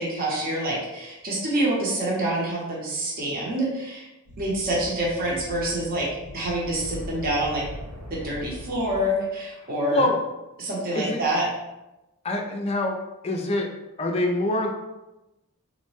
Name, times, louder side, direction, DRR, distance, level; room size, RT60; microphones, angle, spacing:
voice 1, 0.0-4.1 4.4-6.1 6.3-7.6 8.1-10.1 10.6-11.5, right 1 dB, 40° right, -5 dB, 0.8 m, -26 dB
sound 1, 4.3-9.2, equal, 75° right, 0.9 m, -40 dB
voice 2, 12.2-13.0 13.2-13.7 14.0-14.7, left 2 dB, 25° left, 1 dB, 0.4 m, -24 dB
3.8 x 2.1 x 3.1 m, 0.98 s
head